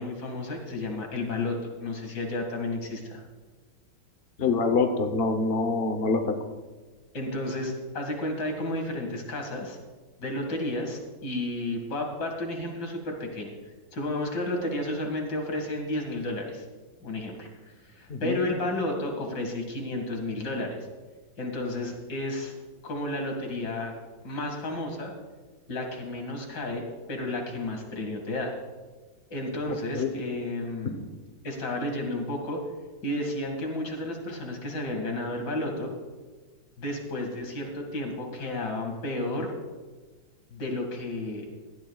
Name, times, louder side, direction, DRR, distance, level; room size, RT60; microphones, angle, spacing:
voice 1, 0.0-3.2 7.1-9.8 10.2-13.5 13.9-16.6 17.0-20.8 21.4-22.5 22.8-23.9 24.2-25.1 25.7-28.5 29.3-31.0 31.4-32.6 33.0-35.9 36.8-39.5 40.5-41.5, left 1 dB, 65° left, 2 dB, 2.7 m, -32 dB
voice 2, 4.4-6.3 18.1-18.4 29.9-30.1, left 4 dB, 45° left, 5 dB, 0.8 m, -25 dB
18.0 x 13.0 x 2.4 m, 1.3 s
omnidirectional pair, 2.1 m